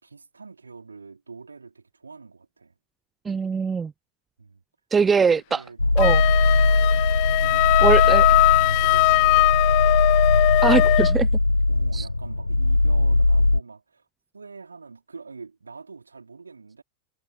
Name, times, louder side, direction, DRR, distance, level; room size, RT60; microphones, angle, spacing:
voice 1, 0.0-2.8 4.4-4.6 5.0-6.2 7.4-10.3 11.7-14.1 14.3-16.8, right 4 dB, 75° right, 4.5 m, -44 dB
voice 2, 3.3-3.9 4.9-5.6 6.0-6.2 7.8-8.2 10.6-11.3 11.9-12.1, right 5 dB, 15° right, 0.3 m, -22 dB
sound 1, 5.8-13.6, left 2 dB, 85° left, 0.8 m, -20 dB
Wind instrument woodwind instrument, 6.0-11.2, left 40 dB or more, 45° left, 0.7 m, -20 dB
figure-of-eight pair, 90°, 0 cm